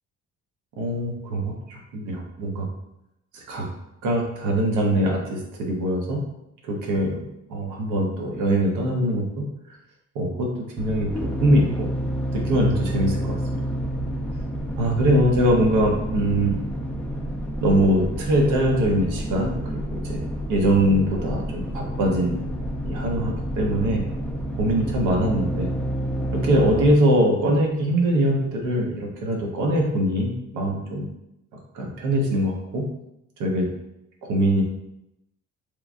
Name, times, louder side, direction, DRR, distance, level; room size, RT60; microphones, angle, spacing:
voice 1, 0.8-2.7 3.3-3.7 4.0-6.2 6.7-9.2 10.1-10.5 10.8-11.9 12.3-13.4 14.8-16.6 17.6-22.4 22.8-24.0 24.6-25.7 26.3-31.1 31.7-32.8 33.4-33.7 34.3-34.6, right 1 dB, 90° right, 0 dB, 0.7 m, -22 dB
sound 1, 10.8-27.0, equal, 5° left, 0.4 m, -29 dB
3.1 x 2.2 x 2.4 m, 0.85 s
cardioid pair, 90°, 30 cm